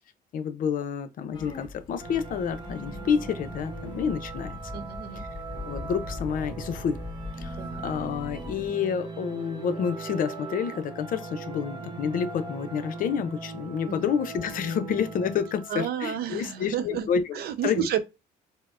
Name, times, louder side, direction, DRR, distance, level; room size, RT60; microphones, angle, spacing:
voice 1, 0.3-4.6 5.1-5.3 5.7-7.0 7.4-17.4 17.6-17.9, left 7 dB, 55° left, 0.6 m, -29 dB
sound 1, 1.3-8.7, left 3 dB, 25° left, 1.3 m, -41 dB
sound 2, 2.0-15.9, right 4 dB, 25° right, 1.0 m, -39 dB
voice 2, 4.7-5.2 7.6-7.8 13.9-14.1 15.7-17.1 17.3-18.0, right 9 dB, 65° right, 0.6 m, -31 dB
4.4 x 2.1 x 2.4 m
cardioid pair, 110°, 17 cm